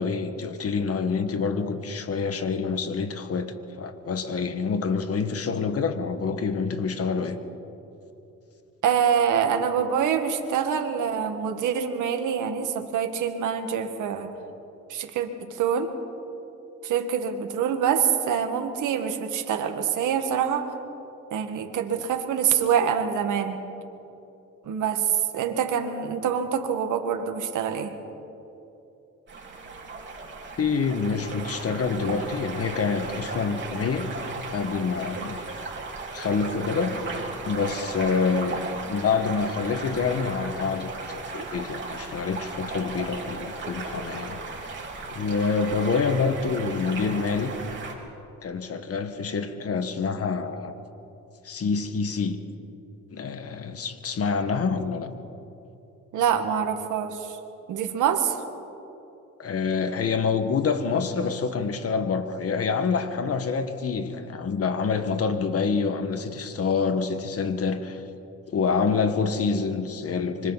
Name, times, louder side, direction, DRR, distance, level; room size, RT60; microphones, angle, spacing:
voice 1, 0.0-7.4 30.6-34.1 34.5-35.4 36.1-38.6 38.9-44.4 45.1-47.5 48.4-50.7 51.4-52.4 53.1-55.1 59.4-68.0 68.5-70.5, left 5 dB, 50° left, 8 dB, 1.7 m, -27 dB
voice 2, 8.8-14.3 14.9-15.9 16.8-20.7 21.3-23.6 24.7-28.0 56.1-57.4 57.7-58.4, right 8 dB, 80° right, 6 dB, 1.9 m, -25 dB
sound 1, 29.3-47.9, right 3 dB, 40° right, 4.0 m, -36 dB
25.5 x 25.0 x 4.2 m, 2.8 s
cardioid pair, 90°, 30 cm